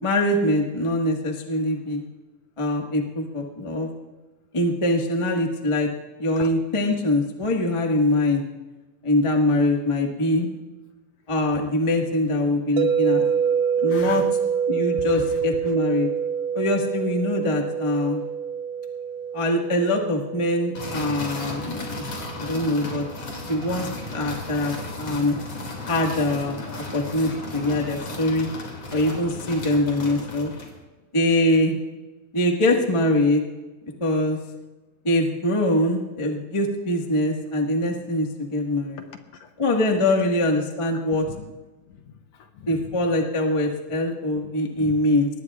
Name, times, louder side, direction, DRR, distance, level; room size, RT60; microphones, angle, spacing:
voice 1, 0.0-2.1 2.6-3.9 4.5-5.9 6.2-8.4 9.0-10.5 11.3-13.2 13.8-14.2 14.7-16.1 16.5-18.2 19.3-22.0 22.4-23.1 23.5-25.4 25.9-26.6 26.9-28.5 28.9-30.5 31.1-31.7 32.3-33.4 34.0-34.4 35.0-39.0 39.6-41.2 42.7-45.3, left 1 dB, 30° left, 1 dB, 0.5 m, -23 dB
sound 1, 12.8-22.8, right 7 dB, 75° right, 1.7 m, -26 dB
voice 2, 13.9-14.3 15.0-15.7 39.0-39.5 40.9-41.5 41.9-42.9 44.4-45.0, left 7 dB, 70° left, 6 dB, 1.8 m, -40 dB
sound 2, 20.7-30.8, left 2 dB, 45° left, 3.3 m, -34 dB
22.5 x 19.0 x 2.4 m, 1.2 s
omnidirectional pair, 3.6 m